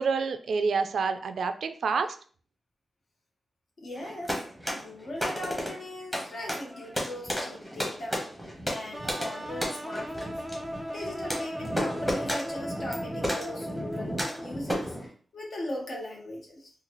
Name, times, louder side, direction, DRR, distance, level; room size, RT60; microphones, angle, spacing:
voice 1, 0.0-2.2, right 5 dB, 75° right, 9 dB, 0.3 m, -28 dB
voice 2, 3.8-4.4 4.7-8.3 8.7-10.3 10.9-14.9 15.3-16.7, left 1 dB, 60° left, -1 dB, 1.1 m, -39 dB
sound 1, 3.9-15.1, equal, 5° left, 1.0 m, -34 dB
sound 2, 8.9-14.7, equal, 10° right, 0.5 m, -37 dB
3.9 x 2.4 x 2.9 m, 0.43 s
wide cardioid pair, 125°, 0 cm